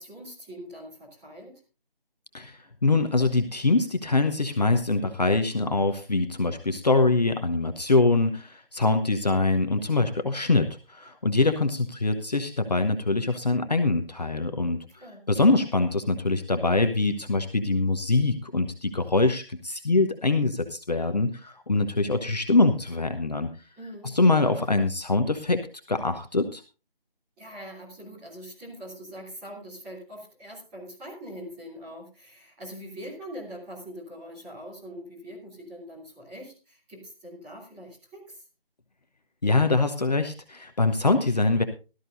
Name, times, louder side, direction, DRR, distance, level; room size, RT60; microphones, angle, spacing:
voice 1, 0.0-1.5 15.0-15.2 23.8-24.6 27.4-38.4, equal, 5° right, -8 dB, 3.0 m, -43 dB
voice 2, 2.3-14.8 15.3-23.5 24.0-25.6 25.9-26.6 39.4-41.6, left 3 dB, 45° left, 7 dB, 1.0 m, -24 dB
17.5 x 13.0 x 2.6 m, 0.32 s
figure-of-eight pair, 165°, 29 cm